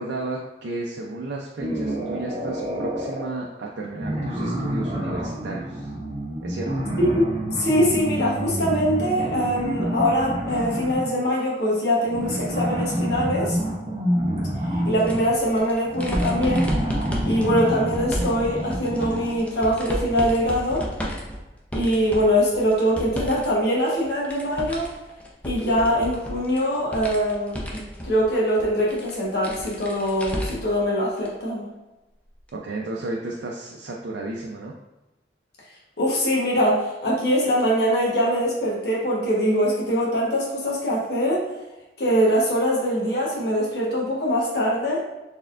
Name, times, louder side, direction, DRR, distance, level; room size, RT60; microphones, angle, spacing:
voice 1, 0.0-5.9 6.4-6.8 32.5-34.7, right 2 dB, 85° right, -1 dB, 0.4 m, -33 dB
sound 1, 1.6-3.3 3.9-11.1 12.1-19.5, equal, 35° right, 0.6 m, -28 dB
voice 2, 7.5-13.6 14.7-16.7 17.2-20.9 21.7-24.9 25.4-31.7 36.0-41.5 42.0-45.0, equal, 65° left, -4 dB, 1.1 m, -23 dB
sound 2, 15.0-23.5 23.8-30.8 31.2-31.3 32.5-32.6, equal, 10° left, 0.5 m, -33 dB
4.2 x 3.5 x 2.4 m, 1.0 s
head